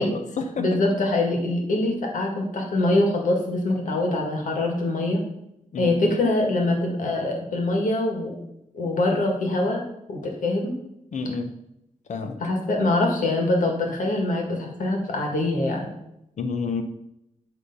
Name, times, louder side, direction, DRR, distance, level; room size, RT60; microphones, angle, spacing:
voice 1, 0.0-0.8 5.7-6.1 11.1-11.6 12.1-12.4 16.4-16.8, left 4 dB, 65° left, 7 dB, 0.9 m, -29 dB
voice 2, 0.6-5.2 5.8-8.3 8.7-9.8 10.1-10.7 12.4-15.9, left 2 dB, 85° left, 1 dB, 2.0 m, -24 dB
9.3 x 3.6 x 5.5 m, 0.83 s
wide cardioid pair, 135°, 13 cm